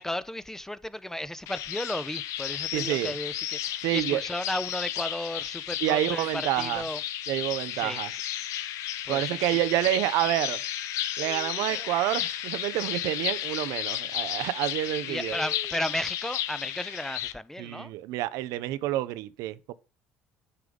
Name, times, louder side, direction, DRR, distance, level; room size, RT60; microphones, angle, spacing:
voice 1, 0.0-7.0 7.7-8.2 8.7-9.6 15.1-17.9, left 1 dB, 5° left, 0.6 m, -34 dB
sound 1, 1.5-17.3, left 12 dB, 65° left, 0.7 m, -33 dB
voice 2, 2.7-3.1 3.8-4.2 5.8-6.8 7.3-8.1 9.1-10.6 11.2-15.4 17.6-19.7, right 15 dB, 70° right, 0.5 m, -28 dB
sound 2, 11.2-12.6 15.2-16.4, right 2 dB, 15° right, 1.4 m, -46 dB
9.7 x 3.5 x 5.1 m
hypercardioid pair, 60°, 6 cm